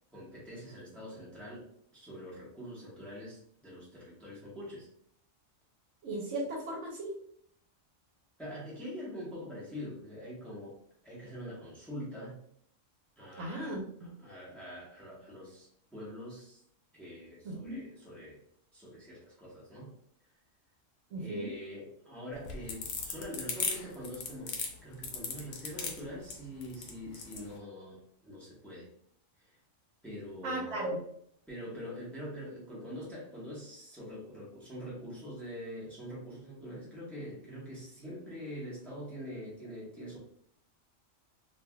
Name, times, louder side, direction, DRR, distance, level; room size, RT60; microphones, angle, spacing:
voice 1, 0.1-1.7 1.9-4.9 8.4-10.7 11.0-12.4 13.2-16.6 16.9-18.4 18.7-19.9 21.2-28.9 29.4-29.6 30.0-30.8 31.5-40.2, equal, ahead, -7 dB, 1.0 m, -44 dB
voice 2, 6.0-7.1 13.4-14.1 17.4-17.8 21.1-21.5 30.4-31.0, right 1 dB, 70° right, -2 dB, 0.9 m, -36 dB
sound 1, 22.3-27.5, left 5 dB, 90° left, 1.0 m, -36 dB
3.2 x 2.7 x 2.2 m, 0.67 s
omnidirectional pair, 1.4 m